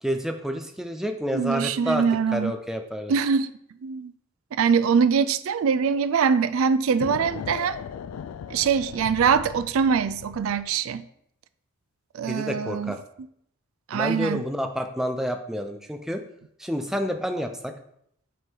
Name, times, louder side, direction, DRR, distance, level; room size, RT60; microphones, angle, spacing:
voice 1, 0.0-2.0 2.3-3.1 12.3-13.0 13.9-16.2 16.6-17.7, equal, ahead, 0.5 m, -29 dB
voice 2, 1.3-2.5 3.1-3.5 3.8-4.1 4.5-7.8 8.5-11.1 12.1-12.9 13.9-14.4, right 6 dB, 75° right, 0.4 m, -23 dB
sound 1, 7.0-10.7, left 7 dB, 85° left, 0.3 m, -38 dB
9.2 x 3.8 x 4.6 m
head